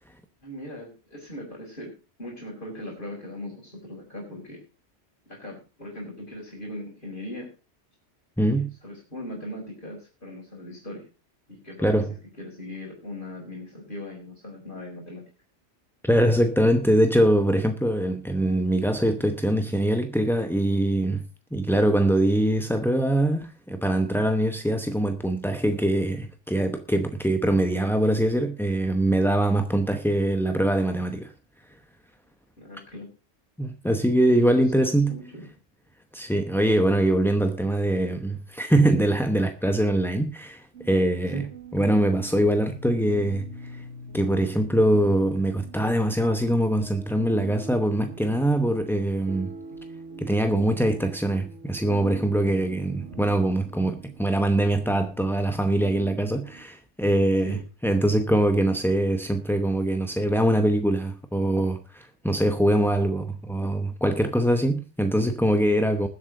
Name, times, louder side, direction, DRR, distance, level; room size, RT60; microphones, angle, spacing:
voice 1, 0.4-1.9 2.2-4.6 5.3-7.5 8.4-11.1 11.5-11.9 12.4-15.2 32.6-33.1 34.3-34.5 35.1-35.5 41.3-41.5 57.0-57.1 57.4-57.6, left 1 dB, 45° left, 4.3 m, -39 dB
voice 2, 8.4-8.7 11.8-12.1 16.0-21.2 21.5-31.3 33.6-35.2 36.1-41.4 41.7-43.8 44.1-49.5 50.2-66.1, right 1 dB, ahead, 0.7 m, -23 dB
sound 1, 40.7-56.6, right 3 dB, 80° right, 1.8 m, -43 dB
20.5 x 7.9 x 3.8 m
omnidirectional pair, 1.2 m